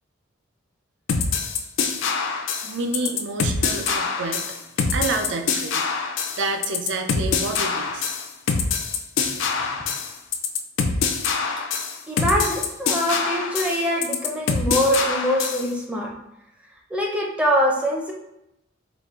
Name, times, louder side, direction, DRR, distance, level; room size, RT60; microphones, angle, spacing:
sound 1, 1.1-15.7, left 5 dB, 70° left, 0.4 m, -25 dB
voice 1, 2.6-4.5 4.8-5.9 6.4-8.1, right 3 dB, 65° right, 5 dB, 0.5 m, -29 dB
voice 2, 12.1-16.1 16.9-18.1, equal, 5° right, -2 dB, 0.5 m, -23 dB
4.0 x 2.4 x 3.5 m, 0.87 s
head